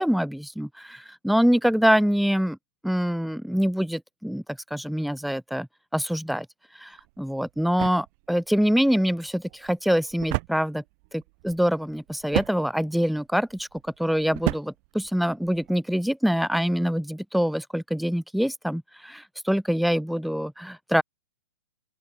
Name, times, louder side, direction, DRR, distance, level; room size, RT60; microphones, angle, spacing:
voice 1, 0.0-2.6 2.8-5.7 5.9-6.5 6.8-10.8 11.1-13.7 14.0-21.0, equal, ahead, 5.0 m, -25 dB
sound 1, 6.9-15.8, right 31 dB, 40° right, 5.4 m, -35 dB
open air
figure-of-eight pair, 120°, 13 cm